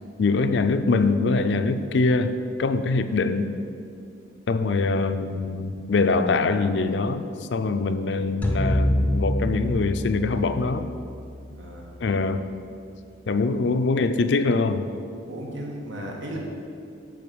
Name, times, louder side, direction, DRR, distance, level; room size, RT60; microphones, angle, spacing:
voice 1, 0.2-2.3 2.6-3.5 4.5-7.2 7.5-10.8 12.0-12.5 13.3-14.9, left 3 dB, 65° left, 10 dB, 0.4 m, -23 dB
sound 1, 8.4-12.8, equal, 10° left, 0.5 m, -27 dB
voice 2, 11.6-11.9 15.2-16.4, right 1 dB, 80° right, -1 dB, 1.5 m, -36 dB
10.0 x 3.8 x 6.9 m, 2.5 s
head